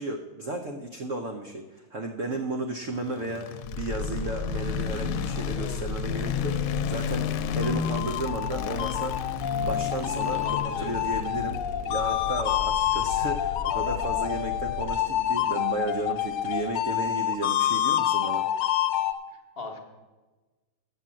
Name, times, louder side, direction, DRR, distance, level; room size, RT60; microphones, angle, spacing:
voice 1, 0.0-9.3 9.5-18.4, right 2 dB, 70° right, 4 dB, 0.7 m, -34 dB
sound 1, 3.0-17.1, left 9 dB, 90° left, 1.5 m, -34 dB
sound 2, 3.6-14.9, left 3 dB, 45° right, 2.0 m, -36 dB
voice 2, 4.5-4.8 10.3-11.0 19.3-19.8, left 3 dB, 40° left, 3 dB, 1.0 m, -41 dB
sound 3, 7.4-19.1, left 11 dB, 70° left, 1.2 m, -28 dB
9.1 x 7.2 x 7.5 m, 1.2 s
omnidirectional pair, 2.3 m